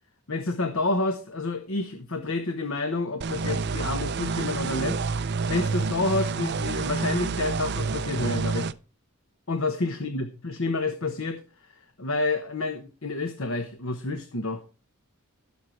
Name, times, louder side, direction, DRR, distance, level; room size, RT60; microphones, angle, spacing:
voice 1, 0.3-5.0 5.5-8.7 9.5-11.4 12.0-14.6, left 2 dB, 65° left, 7 dB, 1.2 m, -29 dB
sound 1, 3.2-8.7, right 4 dB, 50° right, 0.5 m, -28 dB
16.0 x 6.5 x 4.5 m, 0.34 s
head